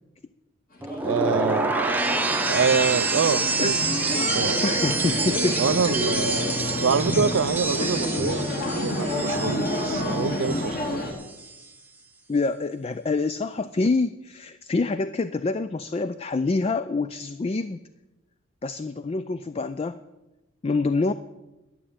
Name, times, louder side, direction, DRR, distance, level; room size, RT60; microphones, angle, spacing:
sound 1, 0.8-10.9 11.2-11.6, right 3 dB, 10° right, 0.7 m, -27 dB
sound 2, 0.9-11.1, left 1 dB, 45° left, 2.1 m, -29 dB
voice 1, 1.0-2.1 2.5-3.8 4.3-4.6 5.6-6.5 6.8-11.0, right 6 dB, 75° right, 0.4 m, -26 dB
voice 2, 4.6-5.6 7.8-8.1 12.3-17.8 18.6-20.0 20.6-21.1, left 3 dB, 30° left, 0.3 m, -26 dB
11.5 x 7.7 x 8.6 m
head